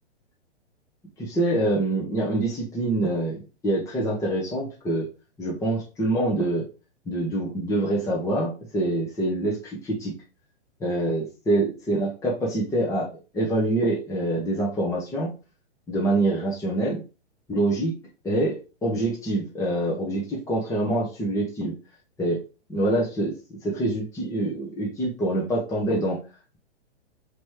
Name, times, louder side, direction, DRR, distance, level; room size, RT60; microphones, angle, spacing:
voice 1, 1.2-5.1 5.4-6.6 7.1-10.1 10.8-13.1 13.3-15.3 15.9-17.0 17.5-17.9 18.2-18.5 18.8-21.7 22.2-22.4 22.7-23.3 23.6-26.2, right 1 dB, 10° left, -4 dB, 1.0 m, -25 dB
4.2 x 3.1 x 3.2 m, 0.32 s
hypercardioid pair, 120°, 33 cm